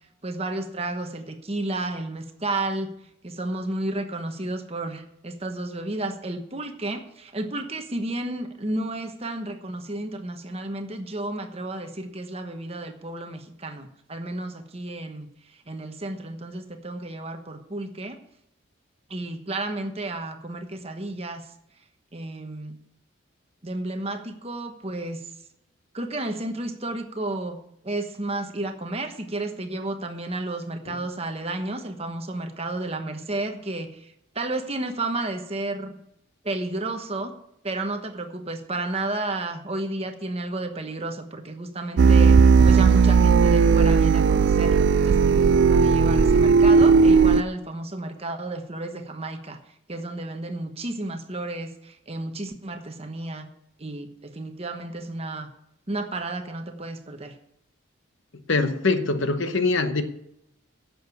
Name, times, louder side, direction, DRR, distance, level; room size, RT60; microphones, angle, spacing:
voice 1, 0.2-2.9 3.2-15.3 15.7-18.2 19.1-21.4 22.1-22.8 23.6-25.2 25.9-27.6 27.8-36.0 36.4-37.3 37.6-42.4 42.6-45.4 45.7-49.6 49.9-53.5 53.8-55.5 55.9-57.3, right 2 dB, 30° right, 1.1 m, -32 dB
sound 1, 42.0-47.4, right 5 dB, 55° right, 0.3 m, -16 dB
voice 2, 58.5-60.0, left 3 dB, 65° left, 0.9 m, -23 dB
10.5 x 7.1 x 8.2 m
head